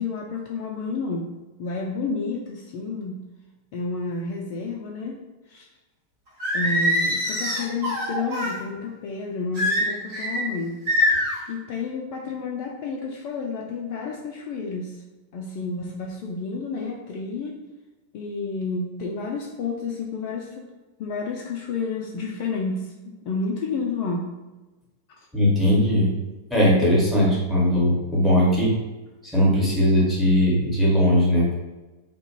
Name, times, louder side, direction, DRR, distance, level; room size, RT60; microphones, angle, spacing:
voice 1, 0.0-1.3 1.6-3.2 3.7-5.2 5.5-5.7 6.5-10.8 11.5-15.0 15.3-17.6 18.1-20.7 21.0-24.3, left 4 dB, 45° left, -1 dB, 0.3 m, -30 dB
Singing, 6.4-8.6 9.5-10.4 10.9-11.4, left 1 dB, 50° right, 1.2 m, -23 dB
voice 2, 25.3-26.1 26.5-28.7 29.2-31.5, equal, ahead, -5 dB, 1.0 m, -19 dB
2.4 x 2.1 x 2.9 m, 1.1 s
figure-of-eight pair, 90°, 0 cm